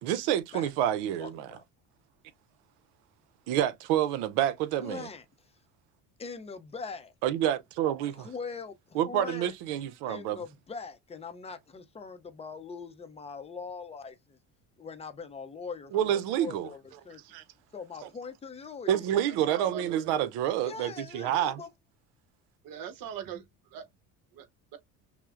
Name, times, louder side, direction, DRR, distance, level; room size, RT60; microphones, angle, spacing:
voice 1, 0.0-1.5 3.5-5.1 7.2-8.3 8.9-10.4 15.9-16.7 17.3-17.4 18.9-21.6, right 11 dB, 85° right, 0.7 m, -28 dB
voice 2, 1.2-1.6 4.8-5.2 6.2-7.1 8.2-9.5 10.1-14.4 14.8-17.2 17.7-19.2 20.6-21.7, left 5 dB, 15° left, 0.5 m, -42 dB
voice 3, 19.2-20.0 22.6-23.4 23.7-23.9, right 8 dB, 60° right, 1.0 m, -40 dB
5.9 x 2.0 x 2.4 m
cardioid pair, 130°, 38 cm